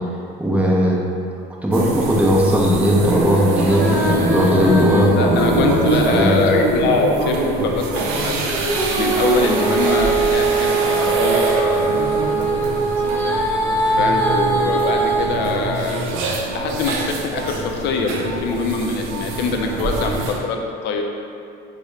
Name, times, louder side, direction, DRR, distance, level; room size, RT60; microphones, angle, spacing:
voice 1, 0.4-1.0 1.6-6.3, equal, 5° right, -4 dB, 0.6 m, -17 dB
sound 1, 1.7-20.4, right 3 dB, 70° right, 0.5 m, -25 dB
Female singing, 3.5-7.3 8.5-15.2, right 2 dB, 10° left, 0.9 m, -21 dB
voice 2, 5.1-8.6 8.9-13.3 13.9-16.1 16.5-21.0, left 4 dB, 55° left, 2 dB, 0.4 m, -23 dB
3.5 x 2.1 x 3.1 m, 2.4 s
supercardioid pair, 80°, 21 cm